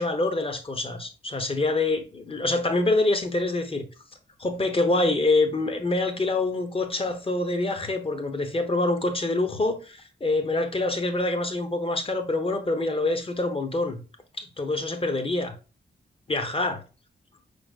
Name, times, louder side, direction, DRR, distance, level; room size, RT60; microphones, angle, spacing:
voice 1, 0.0-3.8 4.4-14.0 14.4-15.5 16.3-16.8, left 2 dB, 30° left, 0.9 m, -26 dB
5.0 x 4.3 x 2.4 m
cardioid pair, 85°, 19 cm